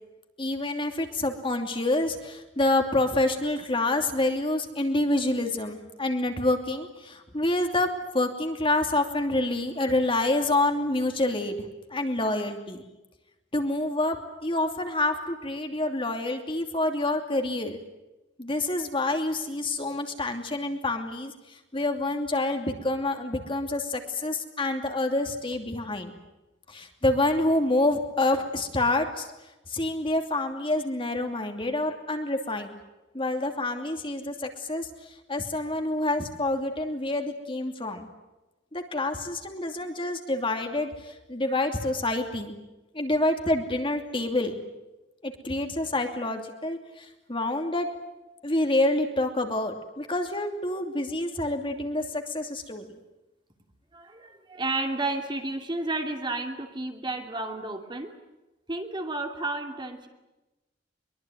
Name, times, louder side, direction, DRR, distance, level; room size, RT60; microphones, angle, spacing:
voice 1, 0.4-7.9 8.1-12.8 13.5-14.2 14.4-17.8 18.4-26.1 26.7-29.3 29.7-32.7 33.1-38.1 38.7-42.5 42.9-44.6 45.2-47.9 48.4-52.8, left 2 dB, 30° left, 4 dB, 2.8 m, -27 dB
voice 2, 53.9-58.2 58.7-60.1, right 2 dB, 25° right, 4 dB, 2.7 m, -32 dB
23.5 x 23.0 x 9.3 m, 1.0 s
head